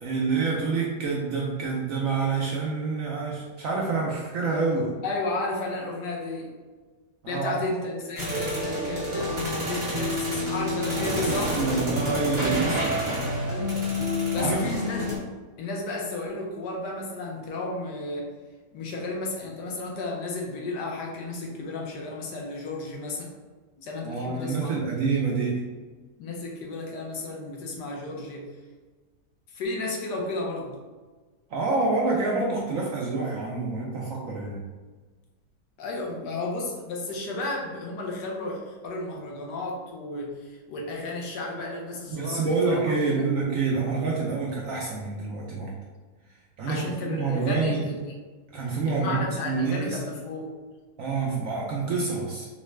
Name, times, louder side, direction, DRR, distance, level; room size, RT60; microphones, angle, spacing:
voice 1, 0.0-4.9 7.2-7.6 11.2-13.0 14.4-14.8 24.0-25.6 31.5-34.6 42.1-45.7 46.6-47.8 48.5-50.0 51.0-52.5, right 4 dB, 70° right, -3 dB, 0.8 m, -27 dB
voice 2, 5.0-6.5 7.3-11.6 13.4-13.9 14.3-15.1 15.6-18.3 18.7-23.3 23.8-24.8 26.2-28.5 29.5-30.8 35.8-43.2 46.6-48.1 48.9-50.5, left 2 dB, 80° left, -1 dB, 1.3 m, -33 dB
sound 1, 8.2-15.2, left 1 dB, 20° right, 0.9 m, -28 dB
3.8 x 2.1 x 3.2 m, 1.3 s
omnidirectional pair, 1.8 m